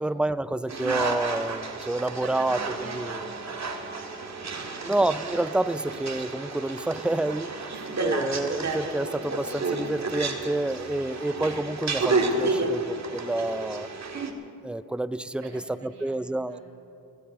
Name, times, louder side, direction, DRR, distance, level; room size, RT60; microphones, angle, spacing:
voice 1, 0.0-2.6 2.9-3.2 4.8-7.7 8.0-13.9 14.6-16.6, right 2 dB, 5° right, 14 dB, 0.4 m, -28 dB
sound 1, 0.7-14.3, right 3 dB, 40° right, 2.0 m, -31 dB
voice 2, 2.2-4.6 7.7-8.0 15.4-16.6, right 3 dB, 75° right, 0 dB, 3.8 m, -45 dB
21.5 x 16.0 x 4.2 m, 2.8 s
cardioid pair, 75°, 41 cm